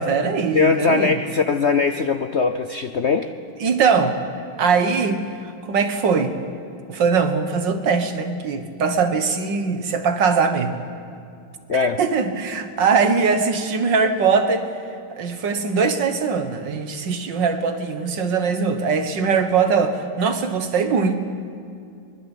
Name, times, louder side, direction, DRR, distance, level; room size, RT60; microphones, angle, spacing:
voice 1, 0.0-1.2 3.6-4.2 4.6-5.2 5.7-6.4 6.9-10.8 11.8-14.7 15.1-21.1, right 5 dB, 65° right, 8 dB, 2.1 m, -21 dB
voice 2, 0.5-3.3 11.7-12.0, left 5 dB, 75° left, 8 dB, 0.6 m, -20 dB
23.5 x 21.0 x 8.4 m, 2.4 s
omnidirectional pair, 2.2 m